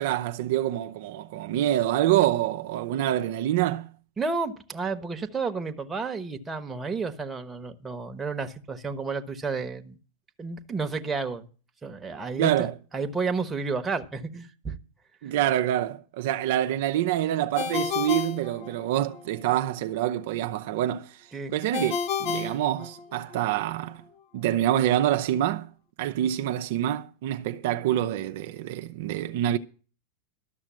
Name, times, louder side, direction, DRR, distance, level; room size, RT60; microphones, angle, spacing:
voice 1, 0.0-3.9 12.4-12.7 15.2-21.9 22.2-24.0 24.3-25.7 26.0-29.6, right 12 dB, 65° right, 0.6 m, -26 dB
voice 2, 4.2-10.0 10.4-11.5 11.8-12.7 12.9-14.8 21.3-21.5, right 4 dB, 15° right, 1.2 m, -31 dB
Ringtone, 17.5-19.2 21.7-23.4, left 6 dB, 55° left, 1.2 m, -31 dB
13.0 x 6.3 x 7.5 m
hypercardioid pair, 115°, 0 cm